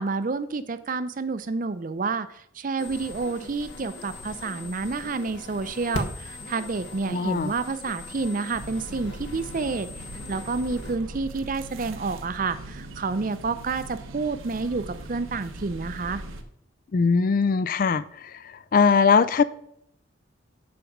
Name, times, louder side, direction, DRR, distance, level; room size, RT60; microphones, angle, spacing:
voice 1, 0.0-9.9 10.3-16.2, right 4 dB, 40° right, 0.5 m, -29 dB
sound 1, 2.8-11.0, left 2 dB, 65° left, 1.2 m, -39 dB
voice 2, 7.1-7.5 16.9-18.3 18.7-19.4, left 5 dB, 45° left, 0.3 m, -20 dB
sound 2, 8.5-16.4, right 1 dB, 85° right, 1.0 m, -40 dB
7.8 x 4.8 x 6.5 m
head